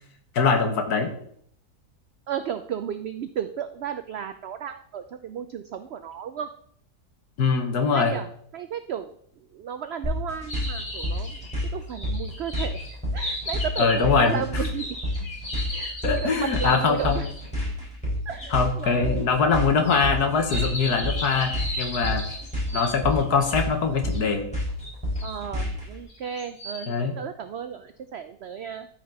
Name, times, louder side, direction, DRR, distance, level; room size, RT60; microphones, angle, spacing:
voice 1, 0.4-1.1 7.4-8.2 13.8-14.4 16.0-17.3 18.5-22.4 22.7-24.5 26.9-27.1, left 5 dB, 80° left, 5 dB, 1.8 m, -23 dB
voice 2, 2.3-6.5 7.9-9.1 9.5-11.4 11.7-12.8 13.1-15.0 15.7-17.3 18.3-19.2 25.2-28.9, right 8 dB, 80° right, 10 dB, 0.5 m, -34 dB
sound 1, 10.0-25.9, left 1 dB, 5° left, 4.5 m, -29 dB
sound 2, 10.5-17.5 18.4-18.5 19.8-23.6 24.1-24.2 24.8-25.4 26.1-26.9, left 1 dB, 60° left, 2.7 m, -36 dB
13.5 x 5.1 x 4.0 m, 0.65 s
omnidirectional pair, 1.7 m